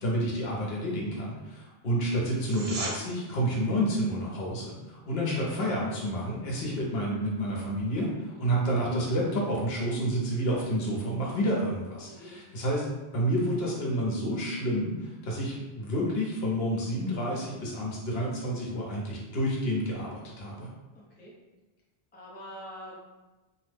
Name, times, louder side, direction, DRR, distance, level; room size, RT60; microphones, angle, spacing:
voice 1, 0.0-12.9 13.1-20.7, equal, 75° left, -4 dB, 1.0 m, -29 dB
sound 1, 2.3-3.0 14.3-14.4, right 2 dB, 65° right, 0.8 m, -35 dB
voice 2, 8.3-8.6 12.0-12.4 20.9-21.3 22.1-22.9, equal, 15° left, -5 dB, 0.4 m, -45 dB
2.7 x 2.0 x 3.3 m, 1.1 s
omnidirectional pair, 1.1 m